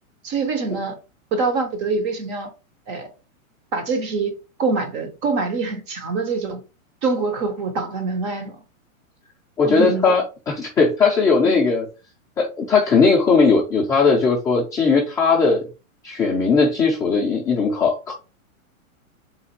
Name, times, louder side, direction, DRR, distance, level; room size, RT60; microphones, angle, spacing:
voice 1, 0.2-1.0 1.3-2.5 2.9-3.1 3.7-6.6 7.0-8.6 9.6-10.1 11.4-11.6, right 4 dB, 25° right, 0.7 m, -25 dB
voice 2, 9.6-11.9 12.4-15.6 16.0-18.1, left 4 dB, 10° left, 0.5 m, -18 dB
3.9 x 2.4 x 4.3 m
hypercardioid pair, 145°, 42 cm